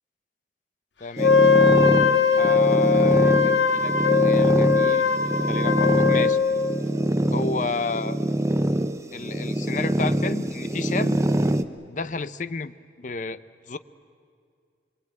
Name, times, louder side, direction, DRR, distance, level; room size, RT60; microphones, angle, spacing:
voice 1, 1.0-1.3 2.3-5.1 5.5-6.4 7.3-8.2 9.1-11.2 11.9-13.8, left 4 dB, 45° left, 14 dB, 0.7 m, -31 dB
Wind instrument woodwind instrument, 1.2-6.8, left 5 dB, 80° left, 0.9 m, -20 dB
sound 1, 1.2-11.6, right 1 dB, 15° right, 0.7 m, -24 dB
25.0 x 23.0 x 8.9 m, 2.2 s
head